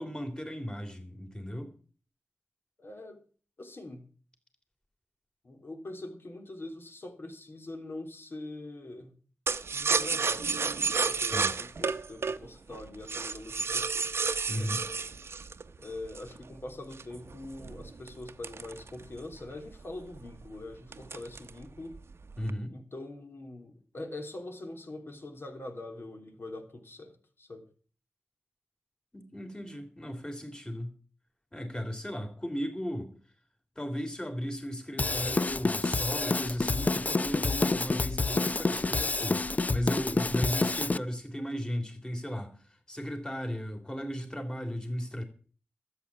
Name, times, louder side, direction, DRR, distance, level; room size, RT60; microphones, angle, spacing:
voice 1, 0.0-1.8 11.3-11.5 14.5-14.8 22.4-22.7 29.1-30.9 31.5-33.1 33.7-45.2, equal, 20° left, 3.3 m, -36 dB
voice 2, 2.8-3.2 3.6-4.0 5.4-9.1 9.7-10.6 11.1-14.1 14.5-14.7 15.8-22.0 22.7-27.6, left 2 dB, 60° left, 3.2 m, -43 dB
sound 1, 9.5-16.4 16.9-19.4 19.7-19.8 20.1-20.5 20.9-21.6 21.9-22.5, right 4 dB, 70° right, 0.8 m, -31 dB
Drum kit / Drum, 35.0-41.0, left 3 dB, 35° left, 0.5 m, -28 dB
13.0 x 8.6 x 7.4 m
wide cardioid pair, 75°, 4 cm